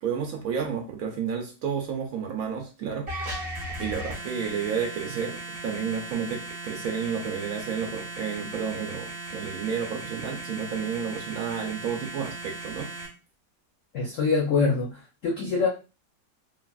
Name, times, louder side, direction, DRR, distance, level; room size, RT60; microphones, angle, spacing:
voice 1, 0.0-3.3 3.8-12.9, right 7 dB, 70° right, 3 dB, 0.9 m, -31 dB
sound 1, 3.1-13.1, right 2 dB, 40° right, 0.9 m, -37 dB
voice 2, 13.9-15.7, left 4 dB, 60° left, -2 dB, 0.8 m, -25 dB
3.2 x 2.4 x 2.3 m, 0.32 s
omnidirectional pair, 1.9 m